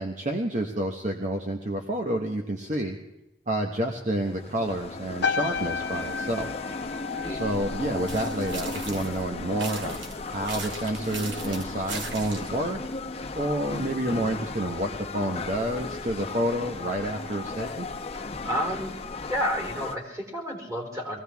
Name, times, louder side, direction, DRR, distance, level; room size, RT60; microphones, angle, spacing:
voice 1, 0.0-3.0 3.5-6.5 7.3-10.0 10.3-12.8 13.3-17.9, right 1 dB, 40° right, 3 dB, 1.2 m, -29 dB
sound 1, 4.2-20.0, left 3 dB, 35° left, 0.9 m, -36 dB
sound 2, 5.2-9.8 10.1-10.5, left 5 dB, 70° left, 0.5 m, -33 dB
voice 2, 7.1-7.4 18.4-18.9 19.3-21.2, equal, 20° right, -1 dB, 3.8 m, -30 dB
sound 3, 8.1-9.2 9.6-12.6, right 4 dB, 90° right, 2.3 m, -38 dB
22.5 x 16.5 x 3.5 m, 0.94 s
head